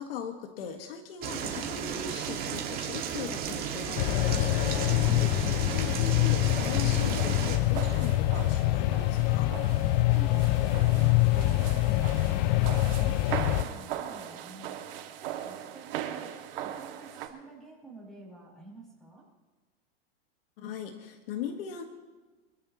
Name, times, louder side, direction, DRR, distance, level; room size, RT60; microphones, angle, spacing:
voice 1, 0.0-9.5 20.6-21.8, left 7 dB, 65° left, 4 dB, 1.8 m, -40 dB
sound 1, 1.2-7.6, right 8 dB, 30° right, 2.0 m, -34 dB
sound 2, 4.0-13.6, left 16 dB, 45° left, 0.7 m, -25 dB
sound 3, 6.5-17.3, right 10 dB, 60° right, 2.2 m, -39 dB
voice 2, 10.1-12.6 12.9-14.8 15.4-16.3 16.6-19.2, right 2 dB, ahead, -4 dB, 6.1 m, -49 dB
26.0 x 14.0 x 3.1 m, 1.3 s
supercardioid pair, 155°, 31 cm